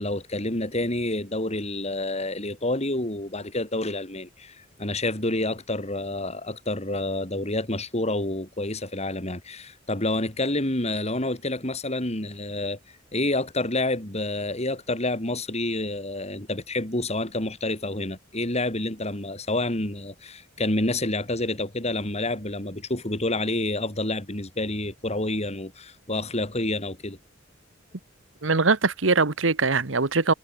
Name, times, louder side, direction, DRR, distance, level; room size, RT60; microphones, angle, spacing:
voice 1, 0.0-12.8 13.1-27.2, left 2 dB, 35° left, 4.3 m, -28 dB
voice 2, 28.4-30.3, right 4 dB, 70° right, 1.4 m, -22 dB
head